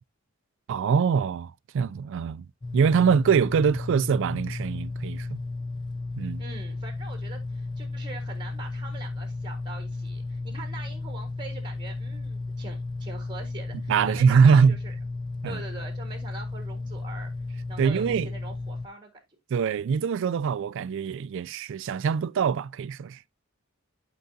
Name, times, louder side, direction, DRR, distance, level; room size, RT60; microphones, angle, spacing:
voice 1, 0.7-2.5 2.7-5.4 6.2-6.4 13.9-14.8 15.4-15.6 17.8-18.3 19.5-23.2, right 6 dB, 60° right, 0.3 m, -23 dB
sound 1, 2.6-18.9, left 3 dB, 20° left, 0.4 m, -34 dB
voice 2, 6.4-14.9 15.4-17.3 17.7-19.2, right 3 dB, 20° right, 1.5 m, -43 dB
11.5 x 4.8 x 2.7 m
head